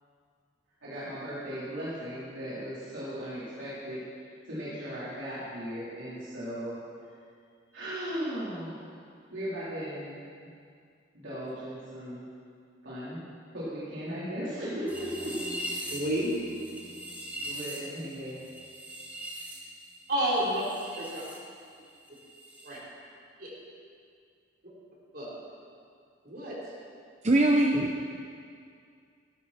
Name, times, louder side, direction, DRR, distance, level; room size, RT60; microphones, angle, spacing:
voice 1, 0.8-4.1 4.5-6.8 7.7-8.8 9.3-10.2 11.1-12.3 12.8-13.2 13.5-15.6 17.4-18.3, equal, 90° right, -11 dB, 4.2 m, -37 dB
sound 1, 14.9-21.4 21.6-22.8, equal, 10° right, 1.9 m, -41 dB
voice 2, 15.9-16.3 20.1-20.6 21.0-21.2 22.6-22.8 23.4-23.5 25.1-25.3 26.2-26.6, right 1 dB, 55° right, -6 dB, 4.0 m, -29 dB
voice 3, 27.2-28.0, right 1 dB, 35° right, 0 dB, 0.8 m, -22 dB
15.5 x 13.0 x 4.4 m, 2.3 s
head